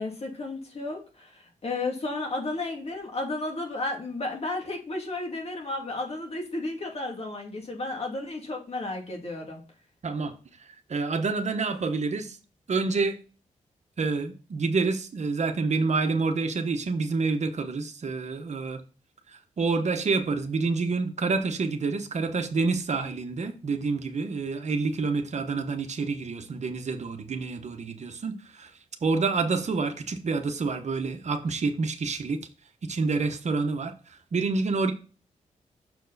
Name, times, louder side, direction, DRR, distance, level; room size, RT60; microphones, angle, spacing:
voice 1, 0.0-9.6, left 2 dB, 50° left, 2.4 m, -33 dB
voice 2, 10.0-10.3 10.6-12.4 12.7-13.2 14.0-18.8 19.3-28.7 29.0-32.4 32.9-34.9, right 4 dB, 60° right, 1.0 m, -28 dB
6.7 x 4.6 x 4.0 m
cardioid pair, 65°, 13 cm